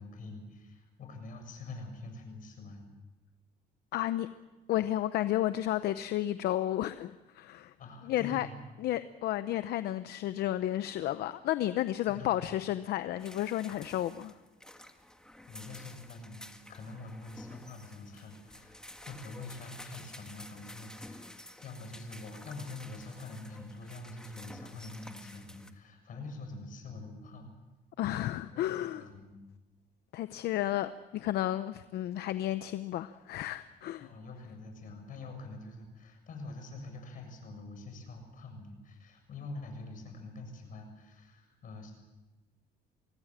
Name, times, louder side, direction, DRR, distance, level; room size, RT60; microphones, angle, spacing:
voice 1, 0.0-2.9 7.8-8.6 12.1-12.5 15.5-27.5 28.5-29.3 34.0-41.9, left 3 dB, 55° left, 7.3 m, -45 dB
voice 2, 3.9-4.3 4.7-7.7 8.1-8.5 8.8-14.3 28.0-29.0 30.1-34.1, left 13 dB, 75° left, 0.8 m, -32 dB
sound 1, 13.2-25.7, left 1 dB, 5° left, 1.8 m, -51 dB
25.0 x 19.0 x 7.5 m
cardioid pair, 110°, 17 cm